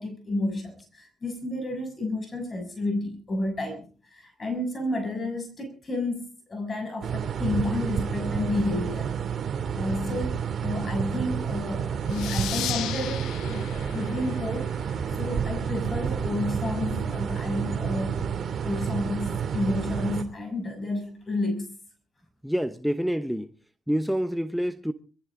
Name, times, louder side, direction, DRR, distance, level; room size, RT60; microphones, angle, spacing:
voice 1, 0.0-3.8 4.1-9.1 9.7-10.3 10.6-14.9 15.2-18.3 18.6-21.7, left 2 dB, 30° left, 6.3 m, -31 dB
sound 1, 7.0-20.2, right 7 dB, 55° right, 2.6 m, -30 dB
sound 2, 12.1-15.3, left 13 dB, 80° left, 0.7 m, -36 dB
voice 2, 22.4-23.5 23.9-24.9, equal, ahead, 0.9 m, -27 dB
22.0 x 15.0 x 3.7 m
cardioid pair, 80°, 0 cm